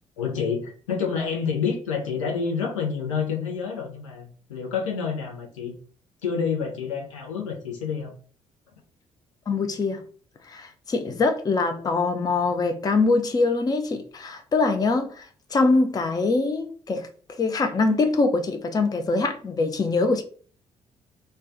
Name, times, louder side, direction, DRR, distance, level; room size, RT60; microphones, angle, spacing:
voice 1, 0.2-5.8 6.2-8.1, left 6 dB, 75° left, 0.6 m, -28 dB
voice 2, 9.5-10.0 10.5-20.2, left 3 dB, 25° left, 0.5 m, -23 dB
3.2 x 2.2 x 3.7 m
figure-of-eight pair, 45°, 17 cm